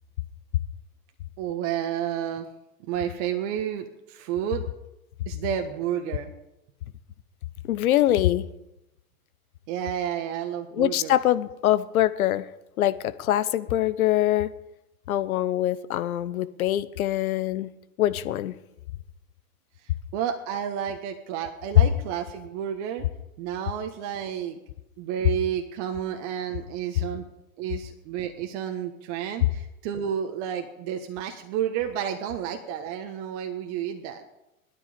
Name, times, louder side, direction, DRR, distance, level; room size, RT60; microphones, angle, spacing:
voice 1, 1.4-2.5 2.9-4.6 5.3-6.3 9.7-11.2 20.1-23.0 23.4-24.6 25.0-27.2 27.6-34.2, right 9 dB, 55° right, 5 dB, 1.5 m, -31 dB
voice 2, 7.7-8.4 10.7-12.5 12.8-14.5 15.1-17.7 18.0-18.5 21.8-21.9, left 13 dB, 75° left, 15 dB, 1.0 m, -23 dB
18.0 x 12.5 x 5.2 m, 0.92 s
hypercardioid pair, 90°, 43 cm